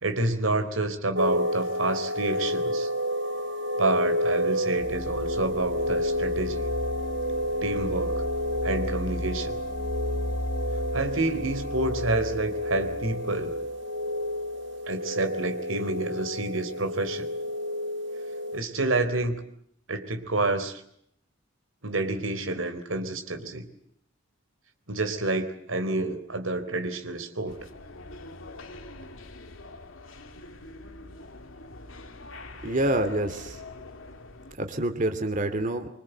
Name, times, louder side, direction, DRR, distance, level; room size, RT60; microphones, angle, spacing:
voice 1, 0.0-2.9 3.8-6.6 7.6-8.2 8.6-9.6 10.9-13.6 14.9-17.3 18.5-19.4 19.9-20.8 21.8-23.7 24.9-27.6, right 2 dB, 85° right, 8 dB, 3.7 m, -28 dB
sound 1, 1.2-18.6, equal, 65° right, 2.1 m, -30 dB
sound 2, 4.8-14.6, left 1 dB, 55° left, 1.5 m, -35 dB
sound 3, 27.5-34.6, left 2 dB, 75° left, 2.4 m, -44 dB
voice 2, 32.6-33.6 34.6-35.9, right 1 dB, 40° right, 7 dB, 2.7 m, -27 dB
26.0 x 25.5 x 8.0 m, 0.70 s
head